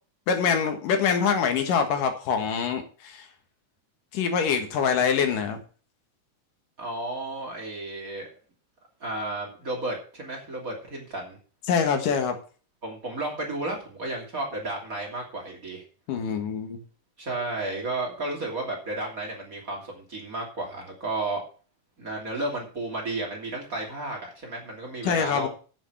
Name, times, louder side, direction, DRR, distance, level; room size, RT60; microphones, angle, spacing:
voice 1, 0.3-3.3 4.1-5.6 11.7-12.4 16.1-16.8 25.0-25.5, left 6 dB, 90° left, 6 dB, 3.3 m, -24 dB
voice 2, 6.8-8.3 9.0-11.4 12.8-15.8 17.2-21.4 22.0-25.5, right 2 dB, 25° right, -1 dB, 3.1 m, -33 dB
8.1 x 7.4 x 7.8 m, 0.39 s
omnidirectional pair, 3.7 m